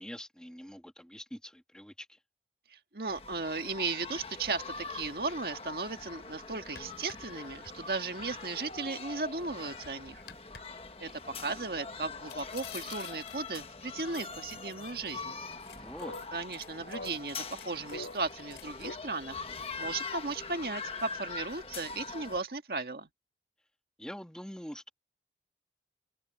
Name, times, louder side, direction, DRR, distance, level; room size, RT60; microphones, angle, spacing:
voice 1, 0.0-2.2 15.8-16.1 24.0-24.9, equal, 5° left, 2.1 m, -44 dB
voice 2, 2.7-10.2 11.0-11.1 11.4-15.4 16.3-19.4 19.8-23.1, right 3 dB, 60° right, 1.9 m, -36 dB
sound 1, 3.1-22.4, left 4 dB, 35° left, 1.4 m, -43 dB
sound 2, 5.6-5.7 6.1-6.2 6.6-8.9 9.3-10.6 12.3-13.6 14.1-15.2 15.5-18.9, left 4 dB, 90° left, 4.9 m, -46 dB
head